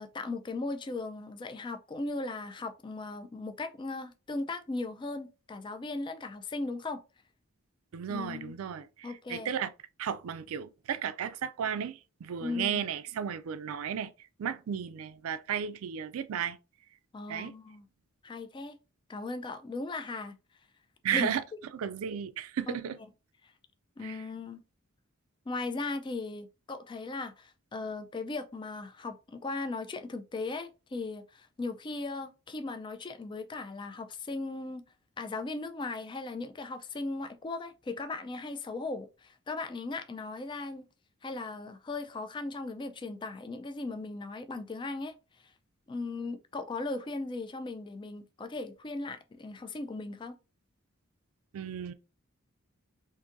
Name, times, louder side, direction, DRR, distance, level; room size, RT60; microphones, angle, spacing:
voice 1, 0.0-7.0 8.1-8.6 9.0-9.5 12.4-12.8 17.1-17.9 18.2-18.8 19.1-20.3 21.1-21.3 22.7-22.8 23.4-23.5 24.0-24.6 25.5-34.8 35.2-40.9 41.2-45.1 45.9-50.3, left 3 dB, 20° left, 0.3 m, -37 dB
voice 2, 7.9-9.7 10.0-14.1 14.4-16.6 17.3-17.5 21.0-21.4 21.7-23.0 24.0-24.2 51.5-51.9, right 8 dB, 75° right, 0.4 m, -34 dB
3.8 x 2.6 x 2.5 m
head